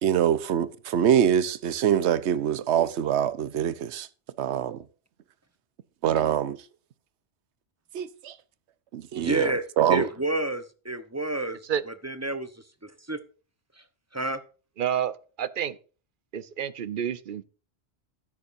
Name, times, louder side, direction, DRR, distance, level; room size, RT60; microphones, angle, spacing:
voice 1, 0.0-4.1 4.4-4.8 6.0-6.6 7.9-8.4 8.9-10.1, right 9 dB, 80° right, 1.0 m, -24 dB
voice 2, 9.2-13.2 13.7-13.8 14.1-14.4, right 2 dB, 15° right, 0.8 m, -30 dB
voice 3, 14.8-15.8 16.3-17.4, right 9 dB, 55° right, 0.8 m, -29 dB
13.0 x 9.9 x 2.6 m
omnidirectional pair, 1.1 m